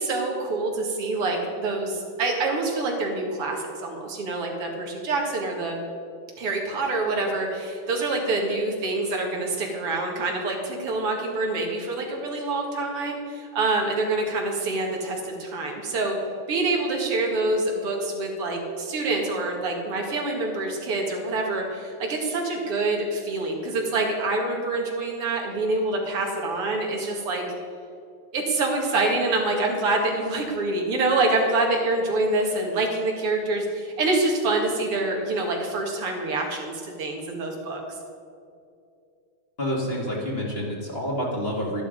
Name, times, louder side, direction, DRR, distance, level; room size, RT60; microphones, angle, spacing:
voice 1, 0.0-5.8 6.4-16.2 16.5-27.4 28.3-38.0, right 2 dB, 85° right, 0 dB, 2.8 m, -26 dB
voice 2, 39.6-41.8, equal, 30° left, -3 dB, 2.0 m, -28 dB
12.0 x 11.0 x 5.1 m, 2.5 s
omnidirectional pair, 2.4 m